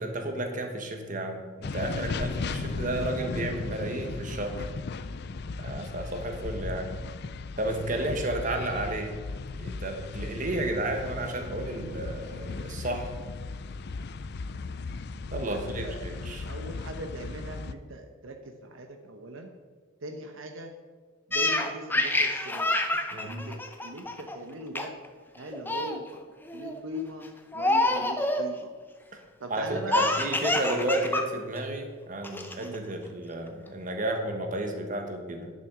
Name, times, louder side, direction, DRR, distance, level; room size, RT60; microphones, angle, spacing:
voice 1, 0.0-4.7 5.6-6.9 7.6-9.2 9.6-13.1 15.3-16.5 23.1-23.4 29.1-29.2 29.5-35.5, right 1 dB, 40° right, 4 dB, 1.3 m, -32 dB
sound 1, 1.6-17.7, left 3 dB, 50° left, 0.4 m, -36 dB
voice 2, 15.5-16.0 16.5-19.5 20.0-20.7 21.3-22.7 23.2-25.0 25.3-26.2 26.5-27.3 27.5-28.7 29.4-30.3 32.6-32.9, right 1 dB, 70° right, 5 dB, 0.9 m, -40 dB
Laughter, 21.3-24.4 24.8-25.1 25.4-26.0 26.5-26.8 27.5-28.5 29.9-31.3 31.6-31.7 32.2-32.8, left 2 dB, 10° left, 0.7 m, -27 dB
11.0 x 7.0 x 6.0 m, 1.5 s
head